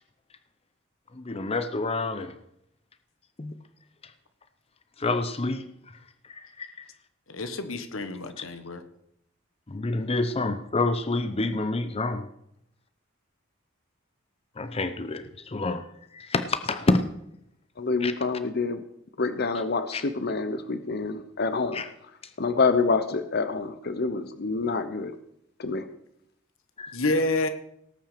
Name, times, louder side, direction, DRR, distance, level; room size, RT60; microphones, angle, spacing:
voice 1, 1.1-2.4 3.4-3.5 4.0-4.1 5.0-5.6 6.6-6.7 9.7-12.2 14.6-15.2 15.5-15.8 16.3-17.0 18.0-18.1 19.9-20.0 21.7-21.9 26.8-26.9, left 2 dB, 30° left, 10 dB, 0.7 m, -27 dB
voice 2, 7.4-8.8 26.9-27.5, left 2 dB, 85° left, 10 dB, 1.4 m, -28 dB
voice 3, 17.8-18.8 19.2-21.8 22.4-25.1 25.6-25.8, left 4 dB, 55° left, 10 dB, 0.9 m, -27 dB
18.0 x 6.3 x 6.7 m, 0.76 s
head